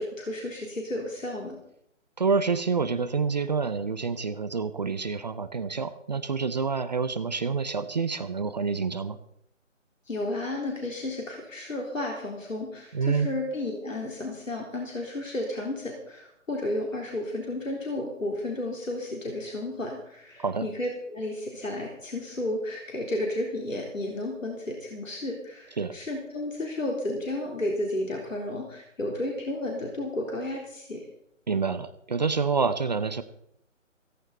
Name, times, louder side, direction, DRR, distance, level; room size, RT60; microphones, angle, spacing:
voice 1, 0.0-1.6 10.1-31.1, left 1 dB, 75° left, 0 dB, 3.9 m, -32 dB
voice 2, 2.2-9.2 12.9-13.3 20.4-20.7 25.8-26.0 31.5-33.2, right 5 dB, 35° right, 12 dB, 0.8 m, -27 dB
16.5 x 15.0 x 4.2 m, 0.73 s
figure-of-eight pair, 150°, 39 cm